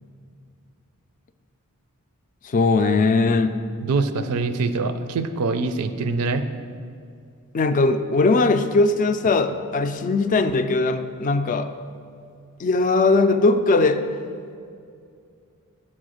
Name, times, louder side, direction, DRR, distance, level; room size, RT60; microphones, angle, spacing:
voice 1, 2.4-3.6 7.5-11.7 12.6-14.1, left 3 dB, 35° left, 10 dB, 0.3 m, -20 dB
voice 2, 3.8-6.4, right 3 dB, 75° right, 10 dB, 0.5 m, -24 dB
7.6 x 4.3 x 6.4 m, 2.3 s
head